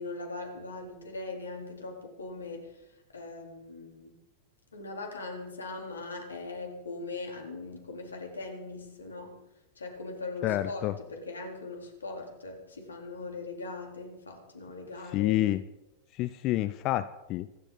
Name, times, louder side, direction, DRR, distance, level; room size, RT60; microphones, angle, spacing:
voice 1, 0.0-4.1 4.7-9.4 9.8-15.4, left 3 dB, 75° left, 1 dB, 4.0 m, -40 dB
voice 2, 10.4-10.9 15.1-15.6 16.1-17.5, left 15 dB, 40° left, 13 dB, 0.7 m, -28 dB
25.5 x 12.0 x 4.2 m, 0.94 s
figure-of-eight pair, 90°, 0 cm